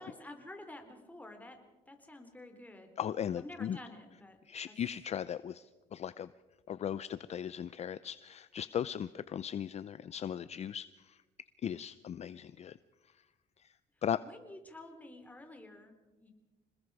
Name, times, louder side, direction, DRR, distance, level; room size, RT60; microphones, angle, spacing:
voice 1, 0.0-1.6 1.9-3.0 3.4-4.4 4.7-4.8 14.0-16.3, left 2 dB, 10° left, 5 dB, 3.4 m, -50 dB
voice 2, 3.0-3.8 4.4-6.3 6.7-11.2 11.6-12.8 13.6-13.7 14.0-14.2, left 9 dB, 40° left, 16 dB, 0.5 m, -38 dB
27.0 x 20.5 x 4.8 m, 1.2 s
cardioid pair, 110°, 17 cm